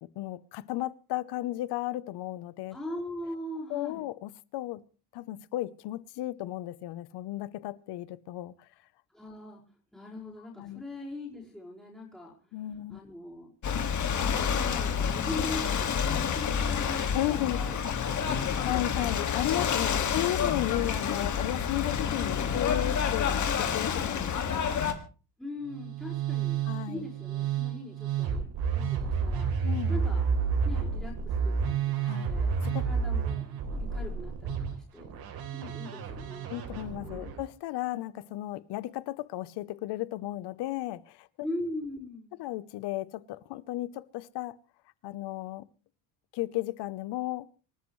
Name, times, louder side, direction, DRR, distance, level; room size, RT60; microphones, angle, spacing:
voice 1, 0.0-2.8 3.7-4.8 5.1-8.7 10.6-10.8 12.5-13.0 17.1-17.6 18.6-24.8 26.7-27.1 29.6-30.0 32.0-32.3 32.6-32.9 36.5-41.3 42.4-44.6 45.0-45.7 46.3-47.5, left 16 dB, 75° left, 0.9 m, -34 dB
voice 2, 2.7-4.0 9.1-9.6 9.9-12.3 12.9-13.5 14.2-19.1 25.4-26.6 26.9-28.5 28.7-29.5 29.9-30.3 30.6-35.1 35.5-36.6 37.0-37.3 41.4-42.5, left 1 dB, ahead, 5.2 m, -41 dB
Ocean / Boat Water vehicle, 13.6-24.9, left 7 dB, 45° left, 2.1 m, -29 dB
Musical instrument, 25.6-37.4, right 6 dB, 60° right, 3.6 m, -30 dB
27.5 x 13.5 x 3.2 m
cardioid pair, 155°, 41 cm